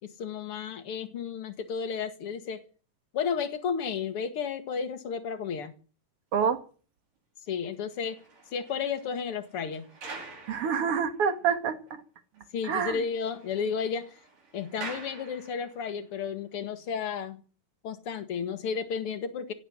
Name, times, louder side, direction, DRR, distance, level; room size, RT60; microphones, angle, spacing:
voice 1, 0.0-2.6 3.1-5.8 7.5-8.2 8.5-9.9 12.5-14.2 14.5-17.4 17.8-19.5, left 6 dB, 50° left, 2.4 m, -32 dB
sound 1, 7.9-11.6 11.9-12.0 12.3-12.4 12.7-16.0 16.7-16.9, right 3 dB, 75° right, 6.4 m, -47 dB
voice 2, 10.5-12.0 12.6-13.0, right 7 dB, 50° right, 2.2 m, -27 dB
17.0 x 8.4 x 9.9 m
omnidirectional pair, 3.8 m